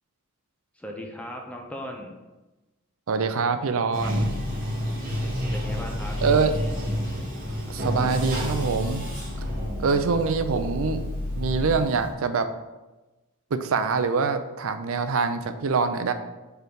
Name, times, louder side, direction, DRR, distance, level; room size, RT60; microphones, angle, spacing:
voice 1, 0.7-2.1 5.5-6.7, equal, 5° left, 1 dB, 0.6 m, -38 dB
voice 2, 3.1-4.3 6.2-6.5 7.7-9.1 9.8-11.0 11.3-12.5 13.5-16.1, right 5 dB, 65° right, 10 dB, 0.5 m, -24 dB
Bathtub (filling or washing), 3.9-12.1, equal, 40° right, 1.7 m, -31 dB
sound 1, 4.1-11.8, left 1 dB, 60° left, 0.4 m, -35 dB
4.7 x 3.9 x 5.1 m, 1.1 s
head